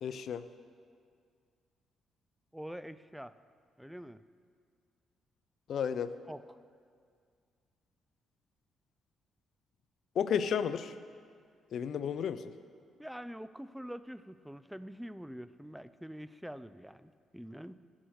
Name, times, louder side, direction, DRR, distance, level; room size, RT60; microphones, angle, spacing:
voice 1, 0.0-0.5 5.7-6.1 10.1-11.0 11.7-12.4, left 7 dB, 65° left, 13 dB, 0.4 m, -32 dB
voice 2, 2.5-3.3 3.8-4.2 6.3-6.4 13.0-17.8, equal, 5° right, 14 dB, 0.3 m, -45 dB
9.5 x 7.7 x 6.4 m, 2.1 s
cardioid pair, 90°, 0 cm